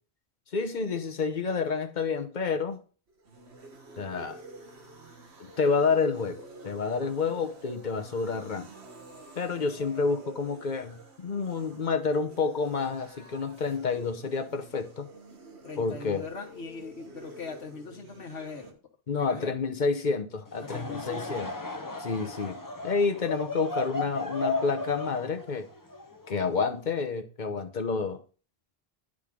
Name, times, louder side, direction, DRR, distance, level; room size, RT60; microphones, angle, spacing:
voice 1, 0.5-2.8 4.0-4.4 5.4-8.7 9.4-15.1 15.8-16.3 19.1-21.5 22.0-25.7 26.3-28.2, left 4 dB, 50° left, 1.0 m, -29 dB
sound 1, 3.1-18.7, right 2 dB, 90° right, 1.6 m, -48 dB
voice 2, 15.6-18.8 19.1-19.6 20.6-21.5 21.8-22.2, left 4 dB, 85° left, 1.6 m, -41 dB
Laughter / Crowd, 20.5-26.9, left 2 dB, 20° left, 0.9 m, -35 dB
10.5 x 5.1 x 3.7 m
omnidirectional pair, 1.1 m